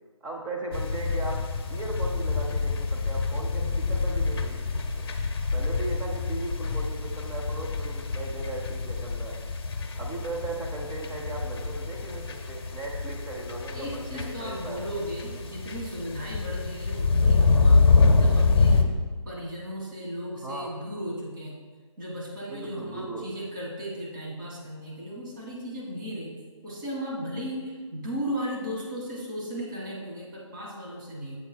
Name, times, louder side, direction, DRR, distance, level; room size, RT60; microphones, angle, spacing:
voice 1, 0.2-5.1 5.5-9.4 10.0-14.9 20.4-20.7 22.5-23.3, right 2 dB, 10° right, -2 dB, 0.6 m, -37 dB
sound 1, 0.7-18.8, left 4 dB, 50° left, 0.7 m, -26 dB
voice 2, 13.7-18.8 19.2-21.6 22.0-26.3 26.6-31.4, equal, 40° right, -4 dB, 2.2 m, -36 dB
7.9 x 7.3 x 2.3 m, 1.4 s
figure-of-eight pair, 150°, 16 cm